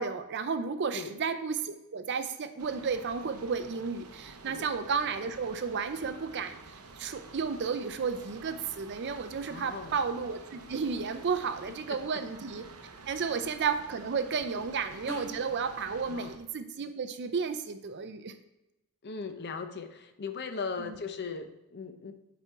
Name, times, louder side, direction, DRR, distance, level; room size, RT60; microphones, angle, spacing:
voice 1, 0.0-6.6 7.0-12.6 13.1-18.3 20.8-20.9, right 5 dB, 50° right, 9 dB, 0.5 m, -33 dB
sound 1, 2.6-16.4, right 3 dB, 90° right, 0.8 m, -49 dB
sound 2, 6.8-15.5, right 1 dB, 10° left, 1.1 m, -52 dB
voice 2, 9.5-10.0 11.7-12.2 13.2-13.3 16.1-16.3 19.0-22.1, left 5 dB, 50° left, 7 dB, 0.7 m, -39 dB
8.1 x 4.3 x 4.5 m, 0.94 s
head